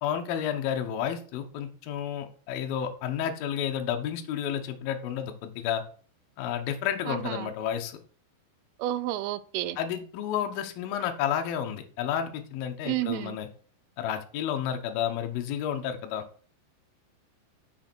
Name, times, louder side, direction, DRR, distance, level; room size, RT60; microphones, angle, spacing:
voice 1, 0.0-5.8 6.4-8.0 9.8-13.5 14.0-16.2, left 9 dB, 85° left, 2.1 m, -31 dB
voice 2, 7.1-7.5 8.8-9.8 12.9-13.4, right 14 dB, 85° right, 3.1 m, -31 dB
6.5 x 6.3 x 6.1 m
omnidirectional pair, 5.9 m